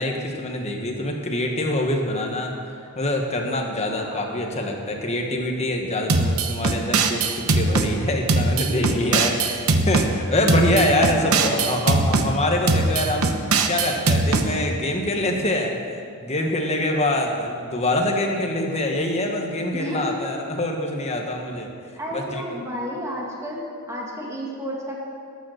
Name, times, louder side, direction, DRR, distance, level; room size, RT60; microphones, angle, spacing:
voice 1, 0.0-2.6 3.0-13.3 13.7-21.7 22.1-22.4, left 1 dB, 30° left, 1 dB, 1.4 m, -25 dB
voice 2, 3.8-4.5 8.7-9.0 11.1-11.8 19.7-20.2 22.0-24.9, equal, 15° right, -3 dB, 2.0 m, -32 dB
sound 1, 6.1-7.9 8.3-10.1 10.5-12.3 12.7-14.5, right 3 dB, 75° right, 0.9 m, -20 dB
13.0 x 9.1 x 6.5 m, 2.4 s
head